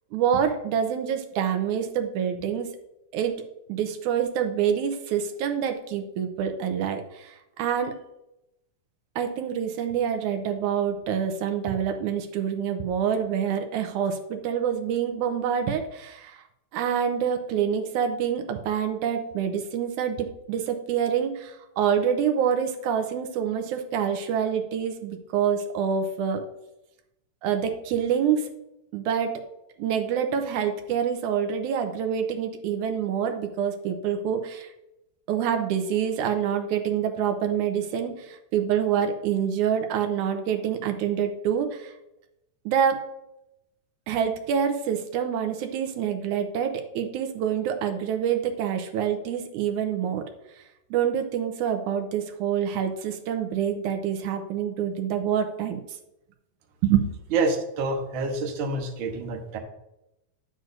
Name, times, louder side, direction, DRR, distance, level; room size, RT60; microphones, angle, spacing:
voice 1, 0.1-2.7 3.1-3.4 3.7-8.0 9.2-16.4 16.7-26.4 27.4-28.5 28.9-29.4 29.8-34.7 35.3-41.9 42.7-43.0 44.1-50.3 50.9-55.8 56.8-57.1, right 8 dB, 85° right, 6 dB, 2.2 m, -26 dB
voice 2, 57.3-59.6, right 3 dB, 55° right, 2 dB, 1.5 m, -27 dB
10.5 x 7.8 x 2.6 m, 0.88 s
omnidirectional pair, 3.4 m